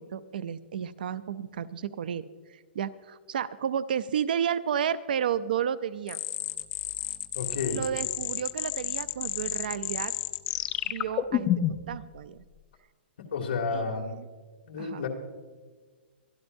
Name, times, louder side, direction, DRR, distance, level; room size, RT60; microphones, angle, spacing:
voice 1, 0.0-2.2 2.7-6.2 7.7-10.1 10.8-11.5 11.9-12.4 13.7-14.3 14.8-15.1, right 8 dB, 50° right, 16 dB, 0.5 m, -32 dB
sound 1, 6.1-11.9, left 12 dB, 15° left, 0.3 m, -31 dB
voice 2, 7.3-7.8 13.2-14.1 14.6-15.1, left 5 dB, 60° left, 1 dB, 2.3 m, -31 dB
23.5 x 12.0 x 2.6 m, 1.4 s
hypercardioid pair, 175°, 6 cm